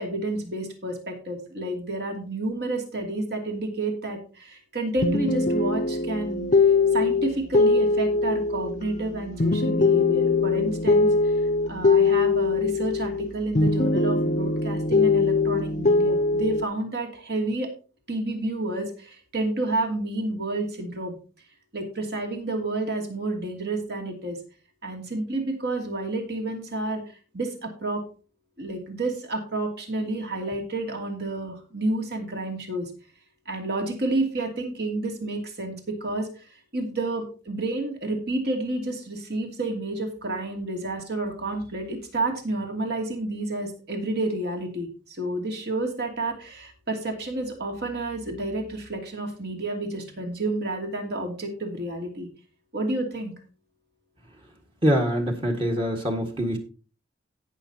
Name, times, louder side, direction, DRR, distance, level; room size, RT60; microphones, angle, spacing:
voice 1, 0.0-6.5 6.9-11.4 11.7-17.7 18.1-21.2 21.7-24.4 24.8-27.0 27.3-28.0 28.6-32.9 33.5-52.3 52.7-53.3, right 2 dB, 55° right, 3 dB, 2.6 m, -30 dB
sound 1, 5.0-13.3 13.6-16.6, left 3 dB, 40° left, 0.6 m, -22 dB
voice 2, 54.8-56.6, equal, 25° right, 1 dB, 1.8 m, -24 dB
18.0 x 6.4 x 2.9 m, 0.35 s
head